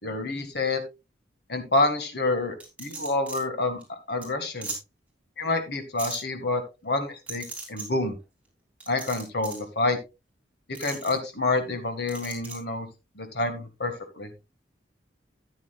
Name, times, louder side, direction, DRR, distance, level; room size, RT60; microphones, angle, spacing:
voice 1, 0.0-0.8 1.5-3.8 4.1-4.7 5.4-8.2 8.9-10.0 10.7-12.9 13.2-14.3, left 2 dB, 60° left, 7 dB, 1.9 m, -28 dB
sound 1, 2.6-3.4 3.8-3.9 4.2-4.3 4.6-4.8 6.0-6.2 7.3-7.9 8.8-9.6 10.7-11.1 12.1-12.6, right 3 dB, 5° right, 3.5 m, -37 dB
13.0 x 9.3 x 2.4 m, 0.26 s
head